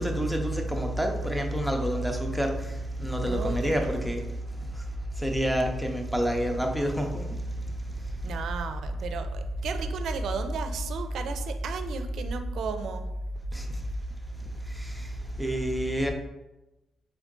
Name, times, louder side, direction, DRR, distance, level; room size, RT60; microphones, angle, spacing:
voice 1, 0.0-4.2 5.2-7.3 13.5-13.7 14.7-15.1 15.4-16.1, right 1 dB, ahead, 0.5 m, -28 dB
voice 2, 3.2-4.1 8.2-13.1, right 2 dB, 60° right, 0.4 m, -32 dB
3.8 x 3.6 x 3.6 m
cardioid pair, 150°, 0 cm